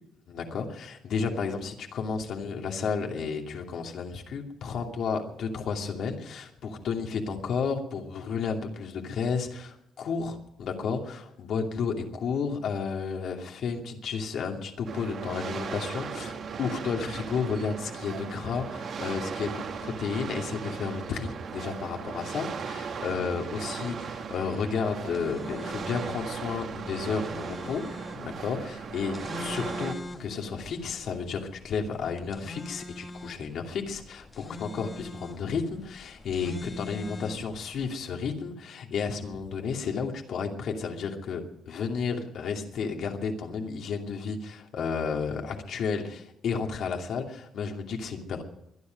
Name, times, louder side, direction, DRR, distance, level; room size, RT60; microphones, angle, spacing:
voice 1, 0.3-27.8 28.1-29.9 30.2-48.4, left 5 dB, 55° left, 2 dB, 2.6 m, -32 dB
sound 1, 14.9-29.9, right 6 dB, 45° right, 1.8 m, -37 dB
sound 2, 25.0-37.9, left 2 dB, 20° left, 1.7 m, -43 dB
23.5 x 10.5 x 5.2 m, 0.81 s
cardioid pair, 170°, 0 cm